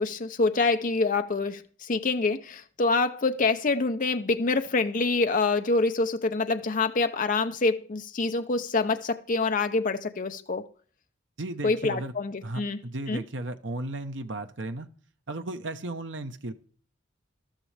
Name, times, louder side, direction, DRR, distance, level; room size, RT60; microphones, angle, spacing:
voice 1, 0.0-10.7 11.6-12.8 13.1-13.2, left 3 dB, 45° left, 0.7 m, -26 dB
voice 2, 11.4-12.1 12.4-14.9 15.3-16.5, right 2 dB, 70° right, 1.1 m, -35 dB
13.5 x 12.5 x 3.4 m
head